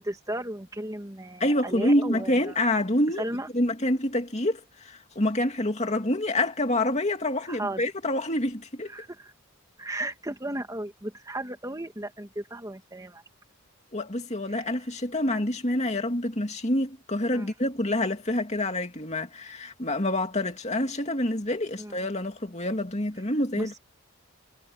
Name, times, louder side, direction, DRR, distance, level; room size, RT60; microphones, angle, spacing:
voice 1, 0.0-2.6 3.2-3.5 7.5-7.8 8.9-9.3 9.8-13.2 14.5-14.7 17.3-17.5 21.8-22.0 23.6-23.8, right 1 dB, 15° right, 2.1 m, -35 dB
voice 2, 1.4-3.2 3.5-8.9 13.9-23.7, left 1 dB, 30° left, 2.5 m, -27 dB
head